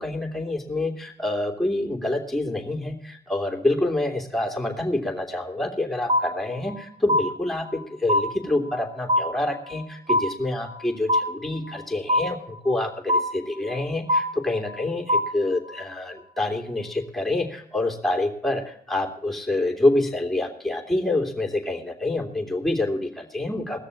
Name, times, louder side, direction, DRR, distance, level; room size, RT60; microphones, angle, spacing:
voice 1, 0.0-23.8, left 2 dB, ahead, 1 dB, 3.1 m, -27 dB
sound 1, 6.1-6.8 7.1-7.8 8.1-8.8 9.1-9.8 10.1-10.8 11.1-11.8 12.1-12.8 13.1-13.8 14.1-14.8 15.1-15.8, left 1 dB, 35° right, 1.4 m, -24 dB
17.0 x 6.7 x 8.4 m, 0.67 s
supercardioid pair, 45°, 19 cm